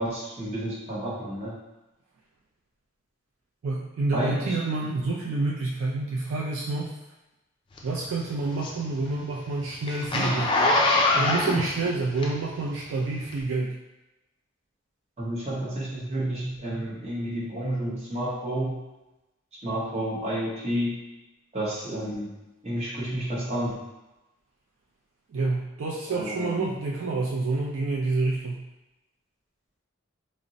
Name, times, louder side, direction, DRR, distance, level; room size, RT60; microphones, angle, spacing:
voice 1, 0.0-1.5 4.1-4.6 15.2-18.8 19.6-21.0 21.5-22.4 22.6-23.8 26.1-26.7, right 1 dB, 30° right, -7 dB, 0.9 m, -30 dB
voice 2, 3.6-7.0 7.8-10.6 11.1-13.7 25.3-28.6, right 3 dB, 65° right, -3 dB, 0.4 m, -28 dB
Zipper (clothing), 7.8-12.7 13.3-13.4, left 2 dB, 25° left, 0.3 m, -24 dB
2.5 x 2.0 x 3.9 m, 1.0 s
head